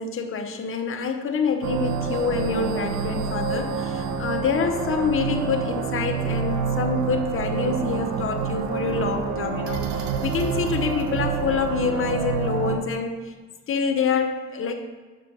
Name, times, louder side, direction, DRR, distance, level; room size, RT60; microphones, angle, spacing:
voice 1, 0.0-13.3 13.7-14.9, left 5 dB, 45° left, 5 dB, 0.8 m, -26 dB
sound 1, 1.6-12.8, right 6 dB, 70° right, 0.9 m, -27 dB
5.7 x 5.0 x 6.1 m, 1.3 s
cardioid pair, 90°, 30 cm